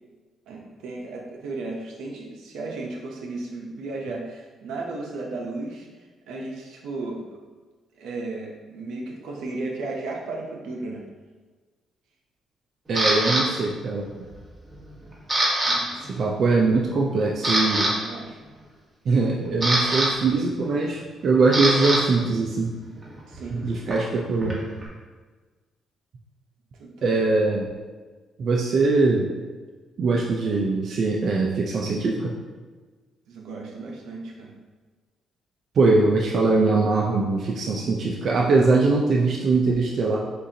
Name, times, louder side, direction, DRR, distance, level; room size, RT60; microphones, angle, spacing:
voice 1, 0.5-7.2 7.9-11.0 15.7-16.0 17.8-18.4 23.3-23.8 26.8-27.1 33.3-34.5, right 3 dB, 85° right, -1 dB, 0.8 m, -35 dB
Camera, 12.9-13.4 14.0-14.4 14.7-15.8 16.0-16.2 16.8-16.9 17.3-17.9 19.1-22.0 22.3-24.9, right 1 dB, 25° right, 1.4 m, -25 dB
voice 2, 12.9-14.1 16.1-17.9 19.1-22.7 23.5-24.6 27.0-27.7 28.4-29.3 30.0-32.3 35.8-40.2, right 3 dB, 60° right, -2 dB, 0.5 m, -22 dB
6.6 x 2.6 x 2.8 m, 1.4 s
cardioid pair, 90°, 0 cm